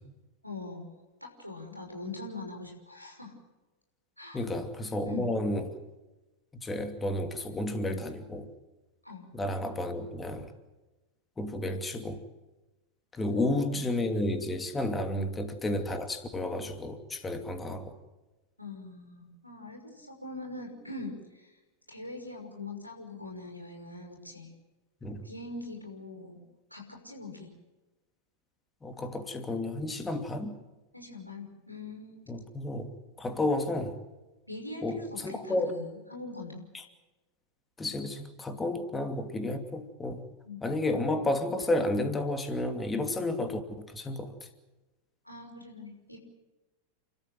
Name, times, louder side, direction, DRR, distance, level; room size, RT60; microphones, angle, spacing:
voice 1, 0.4-0.9 1.2-3.3 4.2-4.4 5.0-5.3 9.0-9.3 13.4-14.0 15.1-15.3 18.6-21.5 21.9-24.5 25.2-26.4 26.7-27.5 30.9-32.2 34.5-36.6 40.4-40.7 45.2-46.2, left 2 dB, 90° left, 1 dB, 5.8 m, -42 dB
voice 2, 4.3-5.8 6.6-8.5 9.3-10.5 11.4-12.2 13.1-18.0 25.0-25.2 28.8-30.6 32.3-32.9 33.2-34.0 34.8-35.8 36.7-36.8 37.8-40.2 40.6-44.5, left 1 dB, 15° left, 8 dB, 2.7 m, -32 dB
30.0 x 13.5 x 9.2 m, 1.1 s
figure-of-eight pair, 90°, 0 cm